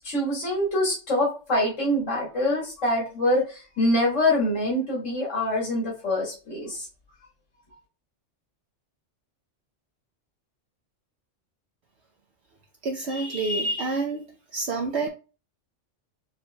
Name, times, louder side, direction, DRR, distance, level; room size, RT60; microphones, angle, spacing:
voice 1, 0.0-6.9, left 1 dB, 90° left, 2.4 m, -25 dB
voice 2, 12.8-14.2 14.5-15.1, right 3 dB, 65° right, 1.0 m, -27 dB
7.3 x 3.1 x 2.2 m
omnidirectional pair, 1.3 m